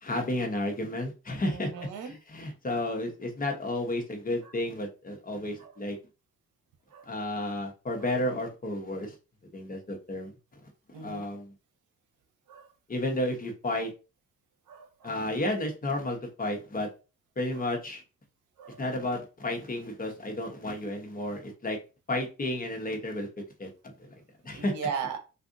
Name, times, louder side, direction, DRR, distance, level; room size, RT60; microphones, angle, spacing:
voice 1, 0.0-1.7 2.0-6.0 7.1-9.1 9.5-10.6 10.9-11.5 12.9-13.9 15.0-16.9 17.4-18.0 18.8-21.8 22.1-23.3 23.6-24.1 24.4-24.7, left 1 dB, 30° left, 2 dB, 1.0 m, -32 dB
voice 2, 1.5-2.1 5.6-5.7 6.9-7.1 10.9-11.3 12.5-12.7 14.7-15.2 18.6-18.8 24.5-25.2, right 6 dB, 85° right, 6 dB, 0.9 m, -37 dB
3.6 x 2.5 x 2.5 m, 0.31 s
cardioid pair, 90°, 30 cm